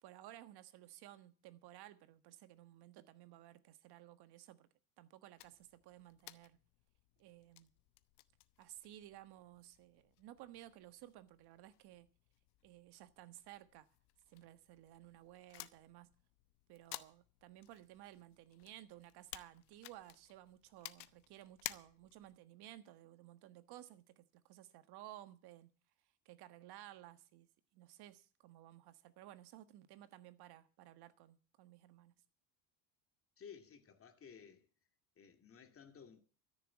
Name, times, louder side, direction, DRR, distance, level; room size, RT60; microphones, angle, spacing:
voice 1, 0.0-4.7 5.0-6.6 7.2-7.7 8.6-12.1 12.6-13.9 14.3-16.1 16.7-25.7 26.2-27.5 27.7-32.1, right 14 dB, 65° right, 1.5 m, -56 dB
sound 1, 5.4-22.4, left 18 dB, 70° left, 1.0 m, -56 dB
voice 2, 33.4-34.7 35.2-36.2, left 7 dB, 30° left, 2.4 m, -56 dB
13.5 x 6.9 x 10.0 m
supercardioid pair, 110°, 42 cm